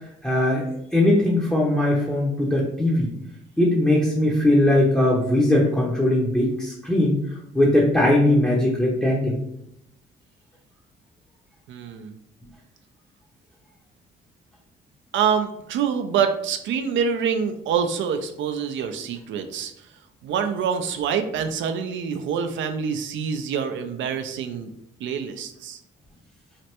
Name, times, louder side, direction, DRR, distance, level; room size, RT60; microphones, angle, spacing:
voice 1, 0.2-0.7 0.9-3.1 3.6-7.2 7.5-9.4, left 1 dB, 5° left, -4 dB, 0.6 m, -20 dB
voice 2, 11.7-12.1 15.1-19.7 20.2-24.7 25.0-25.8, right 7 dB, 70° right, 7 dB, 0.4 m, -26 dB
3.2 x 2.1 x 2.9 m, 0.77 s
cardioid pair, 90°, 20 cm